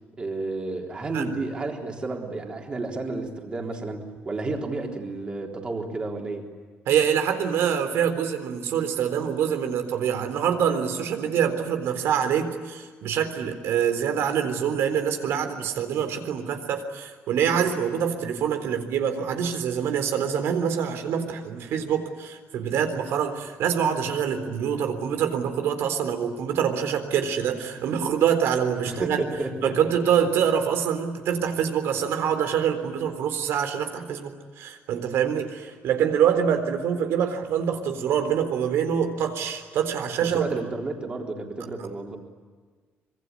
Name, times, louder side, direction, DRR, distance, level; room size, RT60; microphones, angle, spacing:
voice 1, 0.2-6.5 28.8-29.8 40.2-42.2, right 3 dB, 25° right, 2 dB, 3.8 m, -31 dB
voice 2, 6.9-29.2 29.6-40.5, right 8 dB, 80° right, 8 dB, 3.9 m, -25 dB
25.5 x 23.5 x 9.7 m, 1.5 s
cardioid pair, 175°, 4 cm